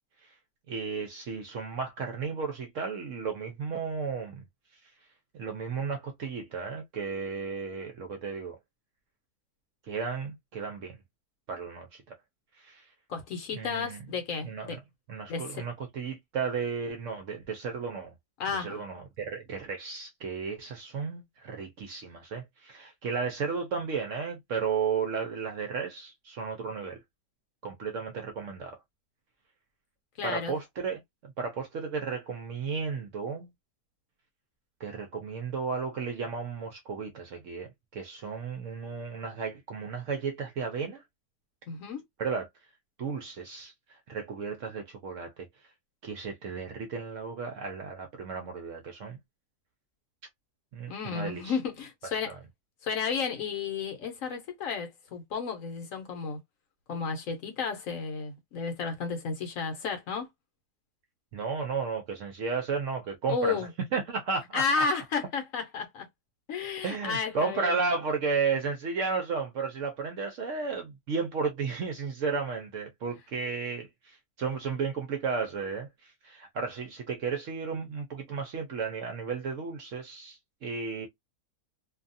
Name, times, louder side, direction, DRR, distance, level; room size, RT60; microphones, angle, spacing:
voice 1, 0.7-4.4 5.3-8.6 9.8-11.0 11.5-12.1 12.6-12.9 13.5-14.0 14.4-14.8 15.1-18.1 18.5-27.0 27.6-28.8 30.2-33.5 34.8-41.0 42.2-42.5 43.0-45.3 46.0-49.2 50.7-51.6 52.3-52.4 61.3-64.8 66.8-81.1, right 5 dB, 65° right, 0.8 m, -34 dB
voice 2, 13.1-14.8 15.3-15.6 18.4-18.8 30.2-30.6 41.7-42.0 50.9-52.3 52.8-56.4 56.9-60.3 63.3-63.7 64.5-66.1 66.5-67.8, left 5 dB, 65° left, 1.0 m, -32 dB
2.6 x 2.3 x 2.5 m
omnidirectional pair, 1.7 m